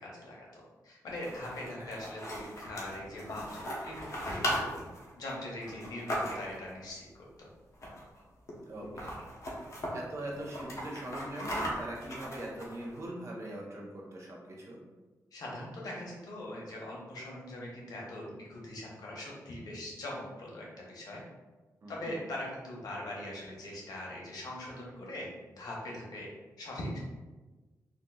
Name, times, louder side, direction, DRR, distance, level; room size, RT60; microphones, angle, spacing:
voice 1, 0.0-4.8 5.2-7.5 15.3-21.2 21.9-26.3 26.6-27.0, left 1 dB, 75° left, -3 dB, 0.9 m, -41 dB
sound 1, 1.1-6.7 7.7-8.2 8.5-8.6 8.8-9.9 10.3-13.0, equal, 50° left, 0.8 m, -38 dB
voice 2, 8.7-9.1 9.6-14.8 21.8-22.2, right 1 dB, 45° right, -3 dB, 0.7 m, -42 dB
3.8 x 2.5 x 2.3 m, 1.2 s
wide cardioid pair, 140°, 7 cm